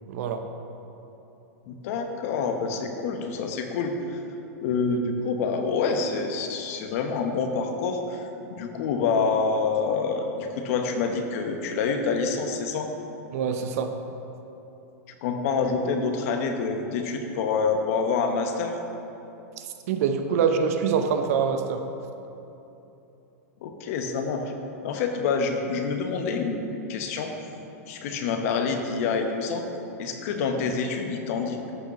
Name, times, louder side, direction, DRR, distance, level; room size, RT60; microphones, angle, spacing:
voice 1, 0.1-0.4 13.3-13.9 19.9-21.8, right 6 dB, 65° right, 7 dB, 0.8 m, -24 dB
voice 2, 1.7-4.2 4.6-12.9 15.2-18.8 23.6-24.5 24.8-27.3 27.9-29.6 30.0-31.7, left 5 dB, 60° left, 5 dB, 0.9 m, -27 dB
13.5 x 5.8 x 3.0 m, 3.0 s
hypercardioid pair, 115°, 9 cm